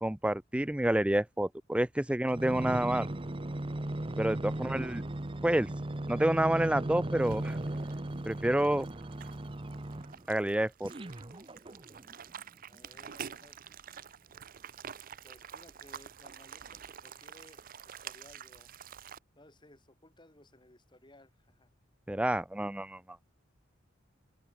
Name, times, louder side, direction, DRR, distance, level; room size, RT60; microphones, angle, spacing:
voice 1, 0.0-3.1 4.2-5.0 5.4-5.7 6.1-7.6 8.3-8.9 10.3-10.9 22.1-23.0, right 1 dB, 5° right, 0.4 m, -28 dB
sound 1, 2.3-10.2 10.8-12.1 12.7-12.8, right 1 dB, 25° right, 0.9 m, -37 dB
voice 2, 4.4-5.0 12.6-13.6 15.2-18.7 19.4-21.7, left 1 dB, 25° left, 5.8 m, -59 dB
sound 2, 7.2-19.2, right 8 dB, 45° right, 0.6 m, -48 dB
open air
head